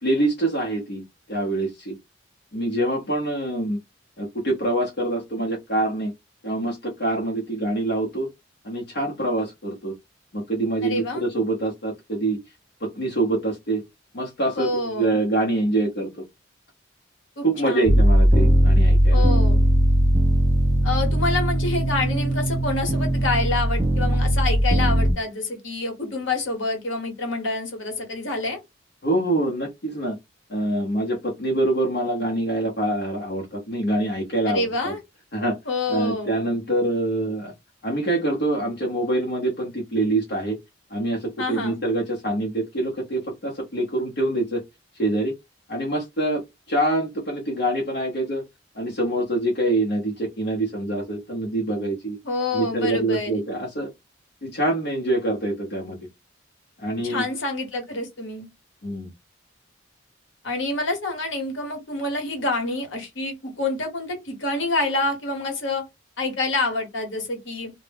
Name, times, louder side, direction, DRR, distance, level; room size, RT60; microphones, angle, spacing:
voice 1, 0.0-2.0 2.5-3.8 4.2-6.1 6.4-8.3 8.6-9.9 10.3-12.4 12.8-13.8 14.1-16.2 17.4-19.2 29.0-30.2 30.5-34.9 35.3-35.6 35.9-37.5 37.8-40.6 40.9-44.6 45.0-45.3 45.7-46.4 46.7-48.4 48.7-52.2 52.5-53.9 54.4-56.0 56.8-57.2 58.8-59.1, right 1 dB, 60° left, 0.7 m, -25 dB
voice 2, 10.8-11.2 14.5-15.2 17.4-18.0 19.1-19.6 20.8-28.6 34.4-35.0 35.7-36.4 41.4-41.8 52.2-53.3 56.9-58.5 60.4-65.8 66.2-67.7, left 2 dB, 80° left, 1.0 m, -27 dB
sound 1, 17.9-25.1, equal, 25° right, 0.4 m, -19 dB
2.0 x 2.0 x 3.2 m
head